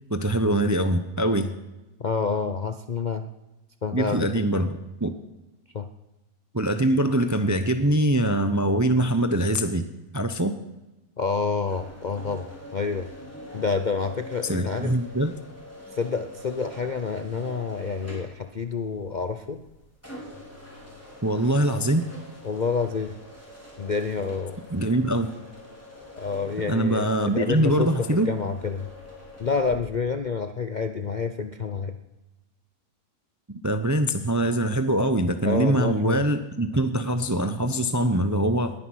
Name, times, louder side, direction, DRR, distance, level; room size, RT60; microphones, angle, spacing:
voice 1, 0.1-1.6 3.9-5.1 6.5-9.9 10.1-10.6 14.4-15.3 21.2-22.1 24.7-25.3 26.7-28.3 33.6-38.7, right 1 dB, 20° right, 9 dB, 0.5 m, -23 dB
voice 2, 2.0-3.2 3.8-4.6 5.7-5.9 11.2-13.1 13.5-15.0 15.9-19.6 22.4-23.1 23.8-24.6 26.2-28.9 29.4-31.9 35.4-36.2, left 5 dB, 45° left, 8 dB, 0.6 m, -28 dB
sound 1, 11.7-29.8, left 1 dB, 10° left, 4.9 m, -44 dB
20.0 x 9.8 x 6.3 m, 1.1 s
omnidirectional pair, 1.6 m